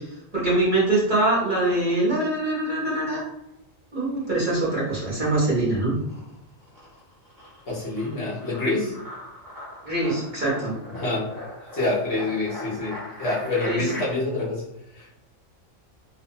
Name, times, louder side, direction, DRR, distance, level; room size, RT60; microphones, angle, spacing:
voice 1, 0.3-3.2 3.9-5.9 9.8-10.7 13.7-13.8, right 2 dB, 40° right, -7 dB, 1.0 m, -23 dB
sound 1, 4.1-4.9 5.2-14.0, left 1 dB, 20° right, 0.6 m, -40 dB
voice 2, 7.7-9.0 10.9-11.3 11.7-15.2, left 2 dB, 60° left, -6 dB, 0.9 m, -27 dB
2.7 x 2.1 x 2.6 m, 0.86 s
omnidirectional pair, 1.4 m